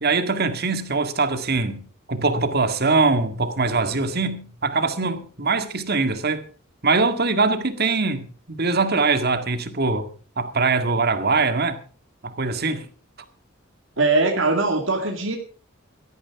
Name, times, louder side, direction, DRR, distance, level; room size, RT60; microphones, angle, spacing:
voice 1, 0.0-6.5 6.8-10.1 10.4-11.8 12.2-12.9, right 3 dB, 50° right, 1.9 m, -22 dB
voice 2, 14.0-15.4, right 3 dB, 65° right, 2.3 m, -21 dB
17.0 x 13.5 x 4.7 m
head